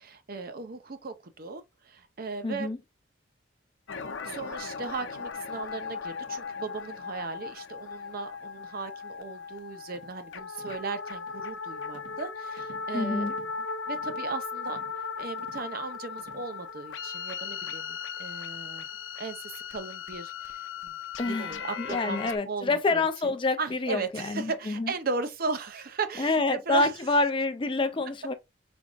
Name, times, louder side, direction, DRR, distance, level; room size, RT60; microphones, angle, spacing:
voice 1, 0.0-2.7 4.2-13.3 13.9-18.9 19.2-21.0 21.2-26.9, right 4 dB, 50° right, 0.6 m, -37 dB
voice 2, 2.4-2.8 12.9-13.3 21.2-24.9 26.2-28.3, left 3 dB, 25° left, 0.4 m, -27 dB
sound 1, 3.9-22.4, left 5 dB, 75° left, 0.7 m, -37 dB
sound 2, 9.9-10.2 10.6-10.9 11.3-11.5 11.9-12.3 12.6-12.9 13.3-13.6 13.9-14.3 14.7-15.0 15.4-15.7 16.2-16.5, right 2 dB, 70° right, 1.2 m, -53 dB
4.9 x 3.5 x 2.4 m
head